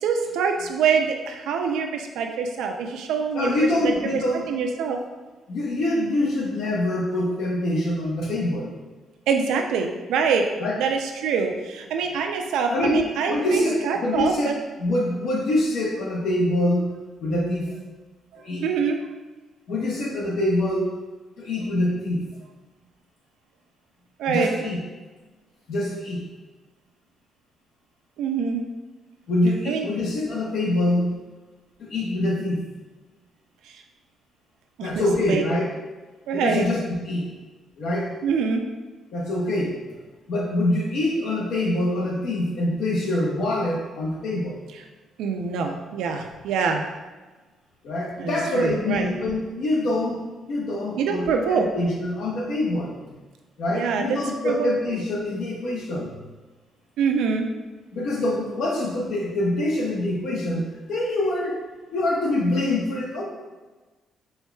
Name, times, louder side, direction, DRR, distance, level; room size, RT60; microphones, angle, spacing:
voice 1, 0.0-3.5 3.8-4.2 4.5-5.0 9.3-10.5 10.8-14.5 18.3-19.0 24.2-24.5 28.2-28.6 29.7-29.9 33.7-33.8 34.8-35.4 36.3-36.7 38.2-38.6 45.2-46.8 48.2-49.1 51.0-51.7 53.7-54.2 54.4-54.7 57.0-57.5, right 6 dB, 85° right, 4 dB, 0.4 m, -25 dB
voice 2, 3.3-4.5 5.5-8.7 10.6-10.8 12.7-14.5 14.8-17.7 18.4-18.7 19.7-20.9 21.4-22.3 24.3-24.8 25.7-26.2 29.3-31.2 31.8-32.7 34.8-35.7 36.3-37.3 37.8-38.1 39.1-39.8 40.3-44.6 47.8-53.2 53.6-56.2 57.9-61.6 61.9-63.2, left 1 dB, 75° left, -3 dB, 1.0 m, -25 dB
4.4 x 3.5 x 2.2 m, 1.2 s
cardioid pair, 90°, 0 cm